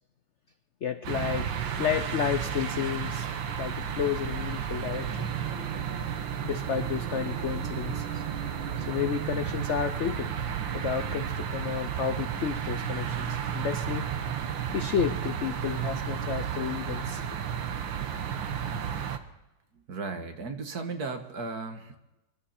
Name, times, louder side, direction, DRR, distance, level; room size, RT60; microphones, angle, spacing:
voice 1, 0.8-1.5 1.8-3.3 3.6-5.3 6.4-8.2 8.8-10.3 10.7-14.1 14.7-17.2, left 8 dB, 65° left, 10 dB, 0.7 m, -31 dB
sound 1, 1.0-19.2, right 8 dB, 85° right, 1.8 m, -32 dB
voice 2, 19.7-22.0, right 4 dB, 55° right, 6 dB, 1.9 m, -36 dB
25.0 x 12.0 x 4.3 m, 1.0 s
omnidirectional pair, 2.0 m